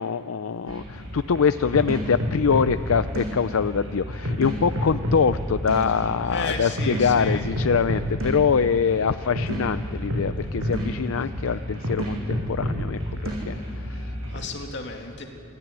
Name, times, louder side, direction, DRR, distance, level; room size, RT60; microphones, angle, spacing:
voice 1, 0.0-14.1, left 6 dB, 75° left, 12 dB, 0.5 m, -24 dB
sound 1, 0.7-14.4, equal, 75° right, 7.6 m, -30 dB
voice 2, 6.3-7.5 14.3-15.3, left 3 dB, 55° left, 2 dB, 2.6 m, -33 dB
27.5 x 15.5 x 9.5 m, 2.9 s
head